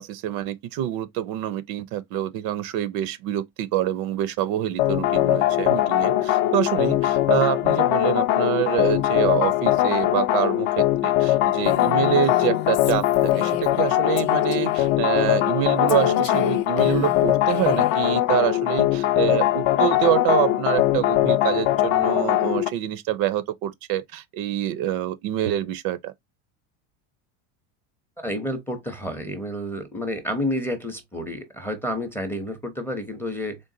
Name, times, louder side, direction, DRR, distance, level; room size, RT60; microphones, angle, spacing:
voice 1, 0.0-26.1, right 13 dB, 50° right, 0.5 m, -26 dB
sound 1, 4.8-22.7, left 14 dB, 50° left, 0.5 m, -21 dB
Female speech woman speaking, 11.7-13.9 14.2-14.9 15.9-18.0, left 10 dB, 80° left, 0.8 m, -35 dB
voice 2, 28.2-33.6, left 1 dB, 5° left, 0.5 m, -30 dB
3.8 x 3.5 x 2.5 m
supercardioid pair, 135°, 47 cm